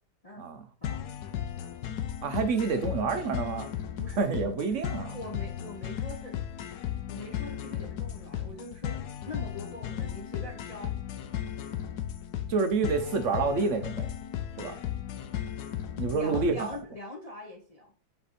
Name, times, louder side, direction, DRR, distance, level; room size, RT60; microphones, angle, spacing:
sound 1, 0.8-16.8, left 10 dB, 65° left, 1.1 m, -36 dB
voice 1, 2.2-3.7 4.2-5.2 12.5-14.1 14.6-14.8 16.0-16.7, right 4 dB, 55° right, 7 dB, 0.9 m, -28 dB
voice 2, 5.0-6.4 7.1-10.9 16.1-17.9, left 1 dB, 35° left, 1 dB, 0.6 m, -42 dB
7.9 x 3.5 x 4.2 m, 0.43 s
omnidirectional pair, 2.1 m